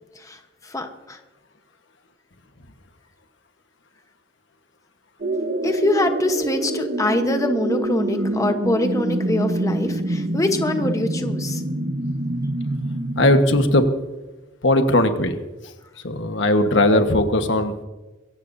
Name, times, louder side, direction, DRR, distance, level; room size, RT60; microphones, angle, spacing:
voice 1, 0.2-1.2 5.6-11.6, left 2 dB, 20° left, 6 dB, 1.0 m, -24 dB
sound 1, 5.2-13.8, right 1 dB, 50° right, 1.0 m, -25 dB
voice 2, 13.2-13.8 14.6-15.4 16.0-17.8, left 1 dB, 75° left, 7 dB, 1.3 m, -18 dB
22.5 x 17.0 x 2.7 m, 1.1 s
head